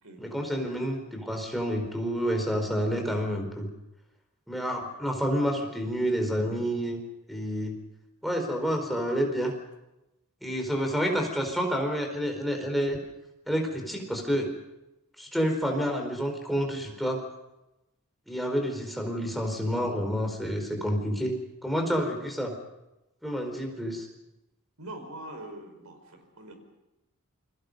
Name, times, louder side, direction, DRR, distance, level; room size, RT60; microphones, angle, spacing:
voice 1, 0.2-3.7 4.5-7.0 7.3-7.8 8.2-9.5 10.4-13.0 13.5-14.5 15.2-17.2 18.3-21.3 21.6-22.5 23.2-24.1, equal, ahead, 2 dB, 4.4 m, -29 dB
voice 2, 24.8-26.5, right 1 dB, 85° right, 6 dB, 5.2 m, -43 dB
28.5 x 22.5 x 5.4 m, 0.94 s
head